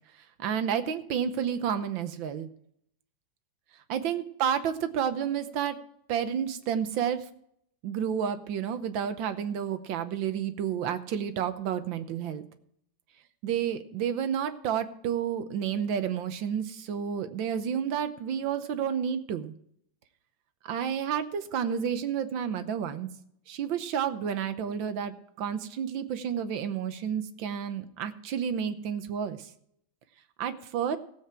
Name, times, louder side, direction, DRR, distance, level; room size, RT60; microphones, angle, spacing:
voice 1, 0.4-2.5 3.9-5.8 6.1-7.3 7.8-12.4 13.4-19.5 20.6-23.1 23.5-29.5 30.4-31.0, right 8 dB, 80° right, 10 dB, 1.6 m, -30 dB
16.5 x 7.6 x 4.3 m, 0.71 s
omnidirectional pair, 2.1 m